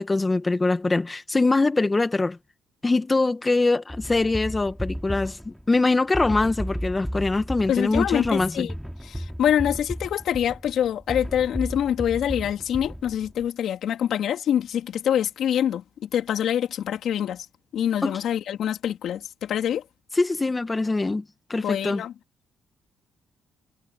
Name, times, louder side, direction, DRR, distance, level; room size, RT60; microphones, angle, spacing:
voice 1, 0.0-2.4 2.8-8.7 18.0-18.2 20.1-21.2 21.5-22.0, left 3 dB, 20° left, 1.7 m, -23 dB
sound 1, 3.9-13.5, equal, ahead, 3.3 m, -34 dB
voice 2, 7.7-8.7 9.0-17.5 17.7-19.8 21.6-22.1, left 10 dB, 70° left, 3.5 m, -25 dB
cardioid pair, 90°, 0 cm